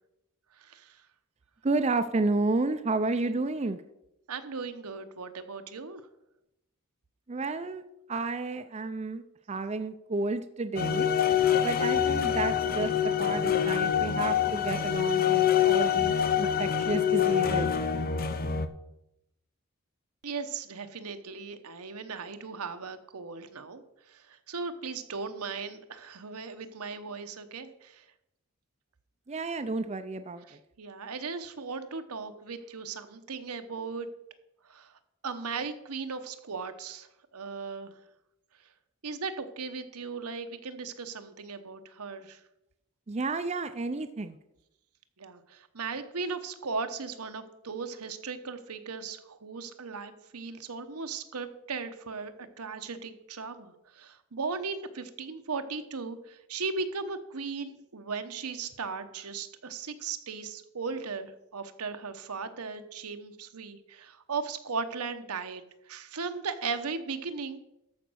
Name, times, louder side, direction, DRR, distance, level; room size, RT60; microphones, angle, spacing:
voice 1, 0.6-1.0 4.3-6.0 20.2-23.8 24.1-28.0 30.5-34.1 34.7-34.9 35.2-37.1 37.3-37.9 39.0-42.4 45.2-67.6, right 4 dB, 85° right, 8 dB, 1.0 m, -37 dB
voice 2, 1.6-3.8 7.3-7.8 8.1-11.1 11.6-17.7 29.3-30.4 43.1-44.4, right 3 dB, 30° right, 9 dB, 0.4 m, -31 dB
sound 1, 10.8-18.7, left 8 dB, 40° left, 0.7 m, -25 dB
13.5 x 5.2 x 6.2 m, 0.87 s
head